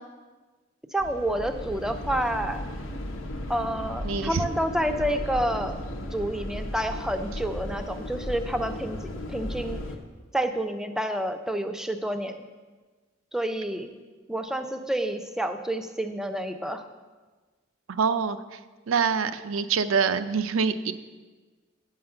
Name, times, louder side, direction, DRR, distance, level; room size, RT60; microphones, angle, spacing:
voice 1, 0.9-2.6 3.5-5.8 6.1-9.0 9.3-9.8 10.3-12.4 13.3-13.9 14.3-16.9, right 1 dB, 5° right, 7 dB, 0.5 m, -29 dB
sound 1, 1.0-10.0, left 1 dB, 85° left, 0.9 m, -35 dB
voice 2, 4.0-4.4 17.9-18.6 18.9-20.9, right 6 dB, 85° right, 11 dB, 0.5 m, -25 dB
8.8 x 5.6 x 6.6 m, 1.3 s
head